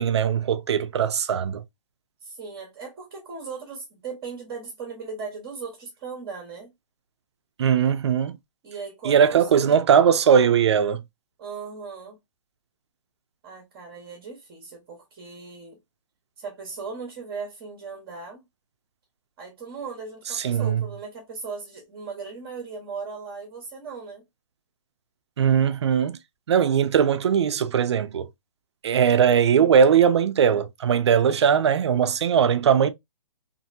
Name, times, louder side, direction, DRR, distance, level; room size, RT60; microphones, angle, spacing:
voice 1, 0.0-1.6 7.6-8.4 9.0-11.0 20.4-20.8 25.4-26.2 26.5-28.3 28.8-32.9, right 7 dB, 60° right, 0.4 m, -20 dB
voice 2, 2.2-6.7 8.6-9.8 11.4-12.2 13.4-15.8 16.4-18.4 19.4-24.2 28.9-29.0, right 5 dB, 20° right, 0.8 m, -38 dB
2.8 x 2.6 x 2.4 m
hypercardioid pair, 170°, 16 cm